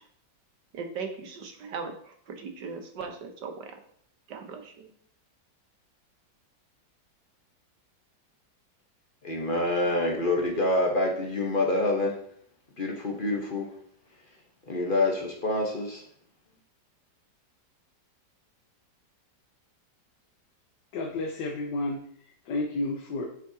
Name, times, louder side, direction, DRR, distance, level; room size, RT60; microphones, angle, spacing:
voice 1, 0.7-3.8 4.3-4.9, right 5 dB, 75° right, 4 dB, 1.7 m, -38 dB
voice 2, 9.2-12.1 12.8-13.7 14.7-16.0, left 2 dB, 35° left, 1 dB, 1.1 m, -26 dB
voice 3, 20.9-22.0 22.4-23.3, left 2 dB, 75° left, 1 dB, 1.5 m, -31 dB
9.4 x 6.5 x 2.8 m, 0.63 s
omnidirectional pair, 1.9 m